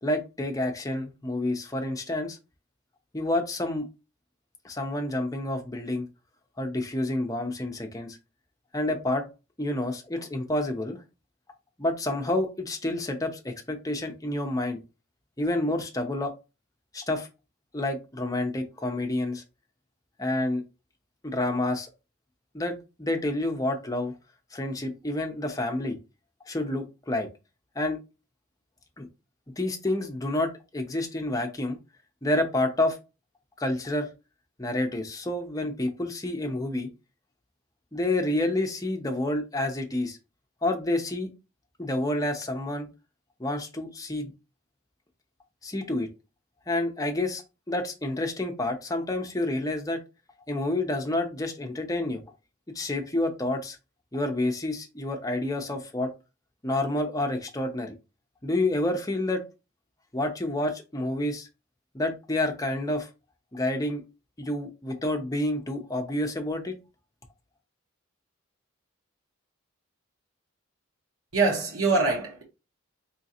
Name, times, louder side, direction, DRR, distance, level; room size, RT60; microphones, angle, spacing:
voice 1, 0.0-2.4 3.1-3.9 4.6-6.0 6.6-8.2 8.7-9.3 9.6-11.0 11.8-14.8 15.4-16.3 16.9-17.3 17.7-19.4 20.2-20.6 21.2-21.9 22.5-24.1 24.5-26.0 26.5-27.3 27.8-28.0 29.0-29.1 29.6-31.8 32.2-33.0 33.6-34.1 34.6-36.9 37.9-40.2 40.6-41.3 41.8-42.9 43.4-44.3 45.6-46.1 46.7-50.0 50.5-52.2 52.7-53.8 54.1-56.1 56.6-57.9 58.4-59.4 60.1-61.5 61.9-63.1 63.5-64.0 64.4-66.8, left 1 dB, 15° left, 0.6 m, -29 dB
voice 2, 71.3-72.4, right 3 dB, 80° right, 1.1 m, -24 dB
3.7 x 3.1 x 2.8 m
head